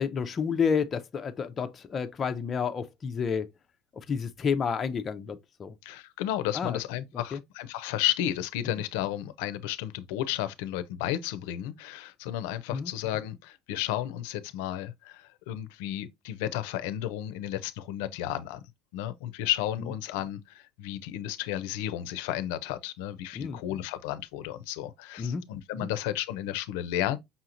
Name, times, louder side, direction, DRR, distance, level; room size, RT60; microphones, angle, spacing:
voice 1, 0.0-3.5 4.1-5.7 6.5-6.8 7.3-7.4 12.7-12.9 23.3-23.6 25.2-25.4 25.7-25.9, left 6 dB, 25° left, 0.4 m, -30 dB
voice 2, 5.8-18.6 18.9-27.2, left 12 dB, 90° left, 0.5 m, -33 dB
5.5 x 2.9 x 2.5 m
cardioid pair, 155°, 0 cm